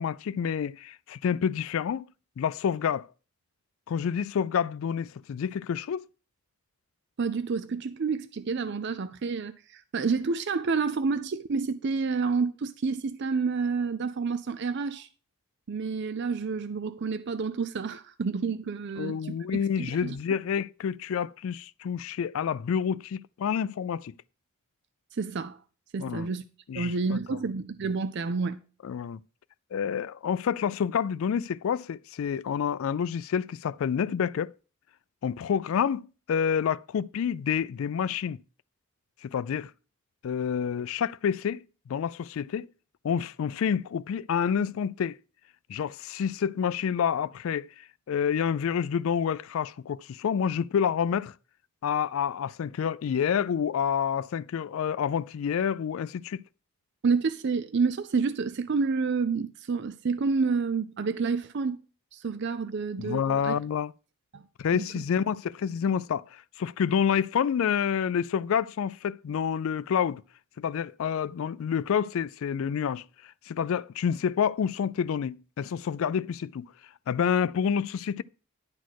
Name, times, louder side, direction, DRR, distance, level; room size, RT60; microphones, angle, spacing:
voice 1, 0.0-2.1 2.4-3.1 3.9-6.0 19.0-24.1 26.0-26.3 26.7-27.2 28.8-29.2 29.7-34.5 35.2-38.4 39.2-39.7 40.2-42.7 43.0-45.2 45.7-51.3 51.8-56.4 63.0-63.9 64.6-70.2 70.6-76.7 77.1-78.2, left 7 dB, 70° left, 0.3 m, -28 dB
voice 2, 7.2-15.1 15.7-20.2 25.1-25.6 25.9-26.4 26.7-28.6 57.0-61.8 62.1-63.6 64.3-64.5 64.7-64.9, right 4 dB, 50° right, 0.4 m, -29 dB
10.5 x 4.2 x 6.3 m
head